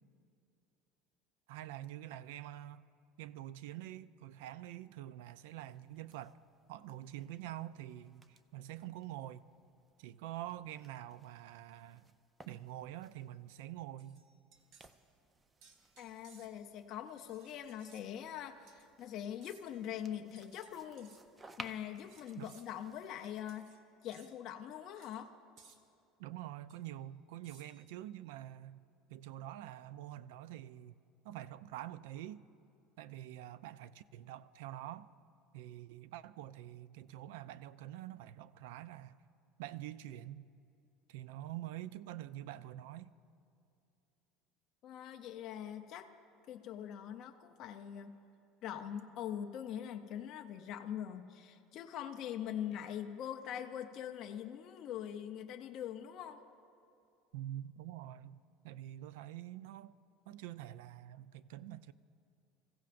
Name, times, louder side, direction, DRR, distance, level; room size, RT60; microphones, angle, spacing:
voice 1, 1.5-2.9 3.2-6.4 6.7-9.5 10.0-12.1 12.5-14.3 22.4-22.5 26.2-28.8 29.1-31.0 31.2-32.5 33.0-35.1 35.5-39.2 39.6-40.5 41.1-43.1 57.3-58.4 58.6-60.0 60.3-61.9, right 13 dB, 85° right, 0.4 m, -46 dB
sound 1, 5.4-13.6 14.5-23.6, right 2 dB, 10° right, 0.4 m, -59 dB
sound 2, 14.0-15.0 15.6-16.7 17.3-18.1 18.7-18.9 19.4-19.8 20.4-21.2 22.0-22.7 23.5-23.8 24.1-24.4 25.0-25.2 25.6-25.8 26.7-26.8 27.4-27.9, right 5 dB, 45° right, 1.0 m, -63 dB
voice 2, 16.0-21.1 21.6-23.7 24.0-25.3 44.8-46.1 46.5-48.1 48.6-56.4, left 10 dB, 35° left, 0.5 m, -43 dB
26.0 x 15.0 x 2.5 m
cardioid pair, 180°, 0 cm